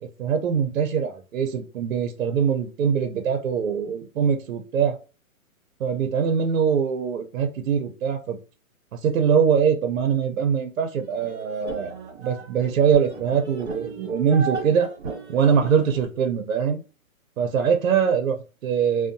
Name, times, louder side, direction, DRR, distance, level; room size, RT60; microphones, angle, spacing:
voice 1, 0.0-5.0 5.8-8.4 9.0-11.9 12.2-14.9 15.3-16.8 17.4-19.1, right 7 dB, 65° right, 6 dB, 0.6 m, -23 dB
sound 1, 11.0-16.1, right 4 dB, 50° right, 1.0 m, -35 dB
2.7 x 2.1 x 2.6 m, 0.34 s
hypercardioid pair, 165°, 43 cm